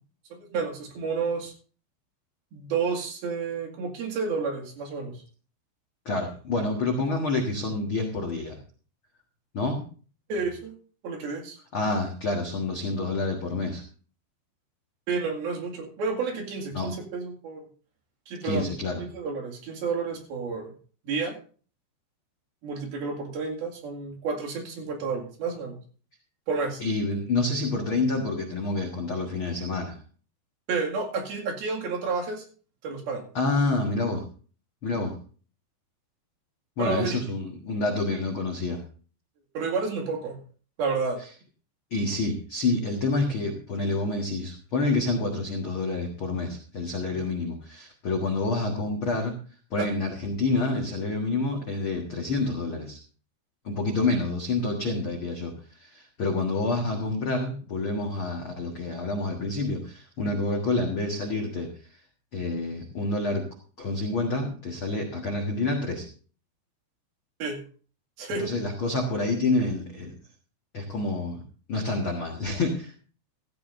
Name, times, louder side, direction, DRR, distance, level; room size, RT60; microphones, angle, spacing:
voice 1, 0.3-1.5 2.5-5.2 10.3-10.7 11.0-11.6 15.1-17.7 18.3-18.7 19.0-20.7 21.1-21.4 22.6-25.8 26.5-26.8 30.7-32.4 32.8-33.3 36.8-37.2 39.5-40.4 40.8-41.2 49.8-49.9 67.4-67.6 68.2-68.4, right 4 dB, 65° right, 0 dB, 3.9 m, -30 dB
voice 2, 6.0-8.6 9.5-9.8 11.7-13.8 16.7-16.9 18.4-19.0 26.8-30.0 33.3-34.2 34.8-35.1 36.8-38.8 41.2-41.3 41.9-49.3 49.7-53.0 53.6-62.0 62.3-63.5 63.8-66.0 68.3-70.1 70.7-71.4 71.7-72.9, left 2 dB, 70° left, 1 dB, 1.2 m, -28 dB
15.5 x 14.0 x 2.6 m, 0.40 s
omnidirectional pair, 5.0 m